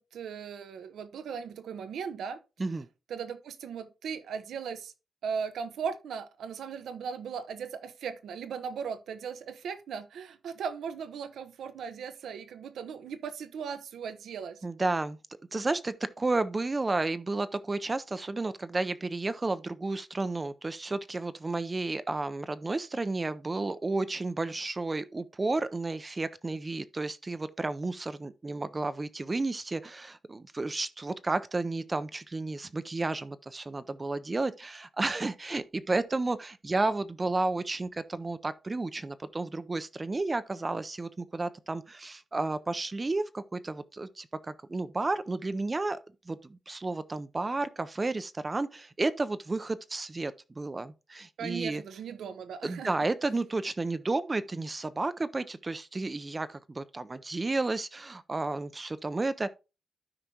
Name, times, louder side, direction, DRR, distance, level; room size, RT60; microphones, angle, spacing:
voice 1, 0.0-2.4 3.1-4.9 5.2-14.6 51.4-52.9, right 6 dB, 85° right, 0.9 m, -38 dB
voice 2, 14.6-15.2 15.5-46.0 46.3-51.8 52.6-59.5, right 3 dB, 25° right, 0.5 m, -32 dB
12.5 x 5.0 x 2.8 m
cardioid pair, 110°, 0 cm